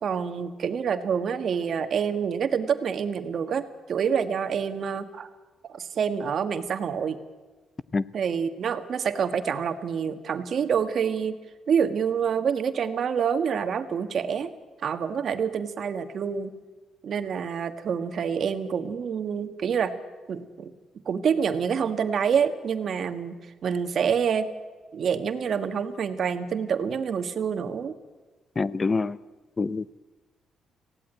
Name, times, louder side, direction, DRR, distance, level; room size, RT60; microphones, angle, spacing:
voice 1, 0.0-5.3 5.6-7.2 8.1-11.4 11.7-14.5 14.8-16.5 17.0-19.9 20.3-20.7 21.0-24.5 24.9-27.9, right 7 dB, 55° right, 1.6 m, -27 dB
voice 2, 28.6-29.2 29.6-30.0, left 4 dB, 30° left, 0.6 m, -26 dB
18.5 x 16.0 x 9.3 m
cardioid pair, 90°, 0 cm